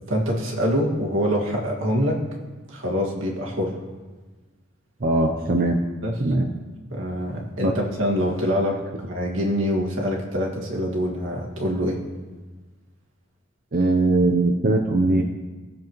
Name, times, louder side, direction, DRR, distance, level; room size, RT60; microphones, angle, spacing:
voice 1, 0.1-2.2 2.7-3.8 6.0-6.1 6.9-12.0, equal, 85° right, -2 dB, 2.0 m, -25 dB
voice 2, 5.0-5.8 6.2-6.5 7.6-7.7 13.7-15.2, right 2 dB, 50° right, 2 dB, 0.7 m, -20 dB
17.5 x 7.4 x 3.1 m, 1.3 s
head